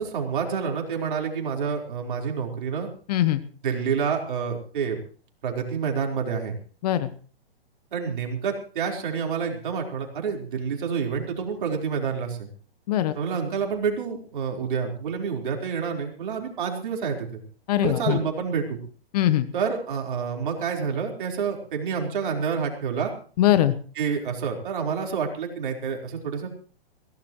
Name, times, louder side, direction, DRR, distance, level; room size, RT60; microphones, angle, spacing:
voice 1, 0.0-2.9 3.6-5.0 5.4-6.5 7.9-12.5 13.1-17.4 17.8-18.8 19.5-23.1 24.0-26.5, right 6 dB, 55° right, 2 dB, 4.4 m, -28 dB
voice 2, 3.1-3.4 6.8-7.1 12.9-13.1 17.7-18.2 19.1-19.5 23.4-23.7, left 13 dB, 40° left, 12 dB, 1.2 m, -21 dB
22.0 x 16.5 x 3.1 m, 0.42 s
figure-of-eight pair, 125°, 31 cm